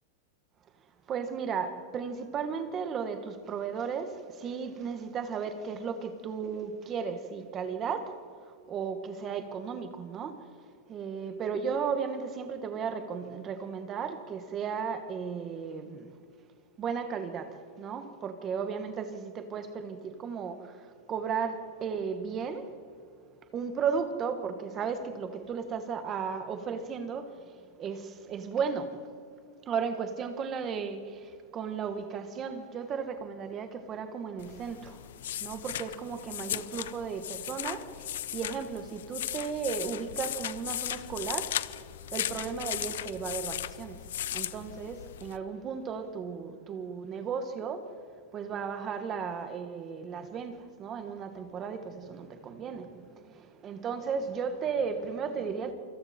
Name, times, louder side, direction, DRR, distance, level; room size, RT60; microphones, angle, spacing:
voice 1, 1.1-8.2 8.7-10.5 10.9-16.1 16.8-22.7 23.5-29.0 29.7-35.0 35.4-41.8 42.1-47.9 48.3-55.7, right 6 dB, 20° right, 8 dB, 1.5 m, -35 dB
sound 1, 34.4-45.4, left 12 dB, 70° left, 0.7 m, -37 dB
28.0 x 25.5 x 4.4 m, 2.2 s
supercardioid pair, 175°, 0 cm